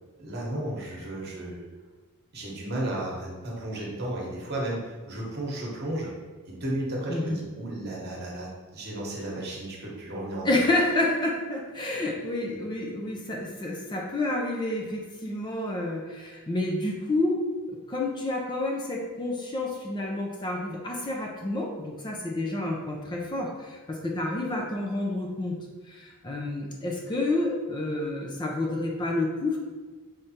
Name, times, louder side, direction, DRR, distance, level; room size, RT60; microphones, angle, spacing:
voice 1, 0.2-1.7 2.3-6.1 6.4-10.4, right 1 dB, 45° right, -3 dB, 1.1 m, -33 dB
voice 2, 10.4-17.5 17.9-25.6 25.9-29.6, left 2 dB, 20° left, -1 dB, 0.5 m, -29 dB
4.9 x 3.3 x 2.8 m, 1.4 s
head